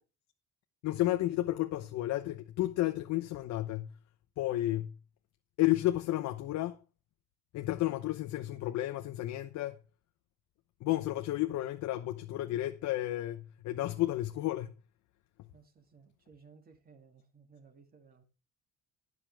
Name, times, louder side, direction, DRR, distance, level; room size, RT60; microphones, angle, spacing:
voice 1, 0.8-3.9 4.4-4.9 5.6-6.8 7.5-9.8 10.8-14.7 15.4-15.5, left 15 dB, 70° left, 0.9 m, -32 dB
voice 2, 15.5-18.2, right 5 dB, 30° right, 2.6 m, -59 dB
12.0 x 9.8 x 3.5 m
cardioid pair, 125°, 30 cm